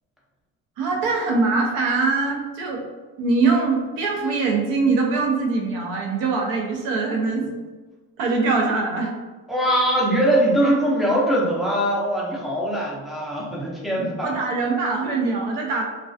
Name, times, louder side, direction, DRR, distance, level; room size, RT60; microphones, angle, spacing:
voice 1, 0.8-2.8 3.2-7.5 8.2-9.1 14.2-15.8, right 3 dB, 80° right, 0 dB, 0.6 m, -22 dB
voice 2, 9.5-14.4, equal, ahead, -6 dB, 0.4 m, -22 dB
2.3 x 2.2 x 2.4 m, 1.3 s
cardioid pair, 150°, 35 cm